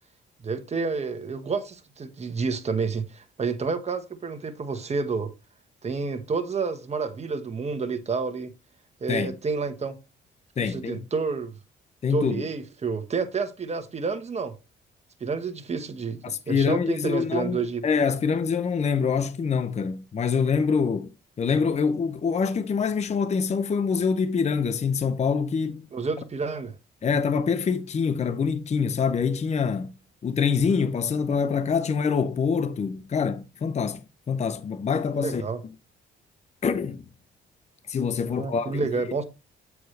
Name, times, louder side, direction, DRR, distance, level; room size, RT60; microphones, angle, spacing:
voice 1, 0.4-5.3 5.8-8.5 9.0-10.0 10.6-11.5 12.1-14.5 15.2-17.8 25.9-26.7 35.1-35.6 38.2-39.2, right 4 dB, 35° right, 1.2 m, -29 dB
voice 2, 10.6-11.0 12.0-12.4 16.2-21.1 21.4-25.9 27.0-29.9 30.2-34.0 34.3-35.4 36.6-37.0 37.9-39.1, left 6 dB, 35° left, 0.6 m, -25 dB
7.9 x 4.7 x 3.3 m
cardioid pair, 90°, 20 cm